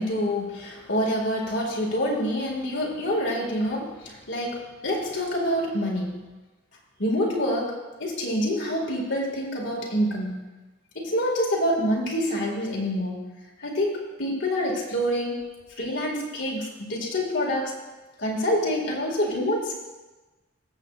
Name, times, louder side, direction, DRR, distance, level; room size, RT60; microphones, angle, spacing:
voice 1, 0.0-6.2 7.0-10.4 10.9-13.2 13.6-15.4 15.8-17.7 18.2-19.7, equal, 60° left, -2 dB, 2.1 m, -27 dB
20.5 x 7.5 x 2.5 m, 1.2 s
head